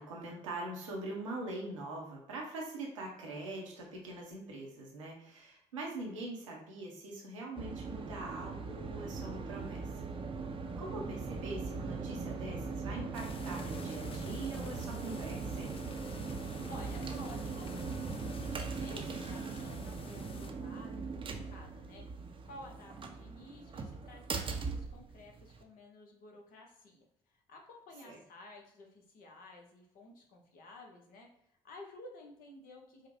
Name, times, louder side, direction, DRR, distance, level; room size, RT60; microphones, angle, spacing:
voice 1, 0.0-10.0 10.8-15.8 28.0-28.2, right 2 dB, 85° right, -2 dB, 0.8 m, -43 dB
sound 1, 7.6-25.6, right 4 dB, 35° right, 0.6 m, -40 dB
sound 2, 13.1-20.5, left 5 dB, 35° left, 0.5 m, -53 dB
voice 2, 16.4-18.3 18.7-22.0 22.4-27.0 27.5-31.3 31.6-33.1, left 2 dB, 60° left, 1 dB, 0.9 m, -53 dB
5.0 x 2.1 x 2.7 m, 0.79 s
hypercardioid pair, 50°, 16 cm